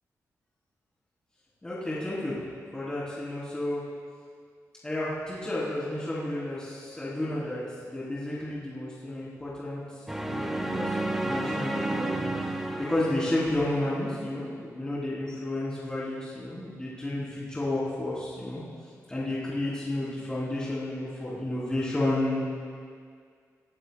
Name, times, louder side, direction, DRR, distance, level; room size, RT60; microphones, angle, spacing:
voice 1, 1.6-2.3 2.7-3.8 4.8-7.6 7.9-18.6 19.1-22.4, left 1 dB, 15° left, -10 dB, 3.6 m, -31 dB
sound 1, 10.1-14.3, right 2 dB, 5° right, 0.7 m, -32 dB
21.0 x 15.0 x 2.4 m, 2.1 s
wide cardioid pair, 165°, 6 cm